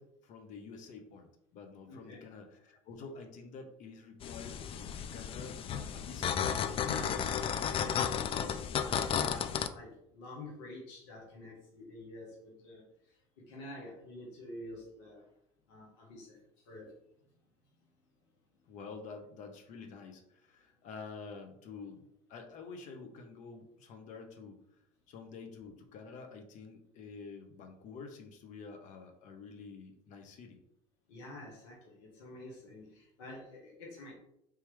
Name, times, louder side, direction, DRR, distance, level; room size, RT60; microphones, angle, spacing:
voice 1, 0.0-6.4 7.0-7.3 8.4-8.9 18.7-24.6 25.1-30.6, left 4 dB, 55° left, 5 dB, 0.8 m, -49 dB
voice 2, 1.8-2.3 6.8-15.3 15.7-16.9 31.1-34.1, left 2 dB, 75° left, -2 dB, 1.2 m, -48 dB
sound 1, 4.2-9.7, left 8 dB, 40° left, 0.3 m, -33 dB
3.4 x 2.9 x 3.4 m, 0.76 s
hypercardioid pair, 75°, 15 cm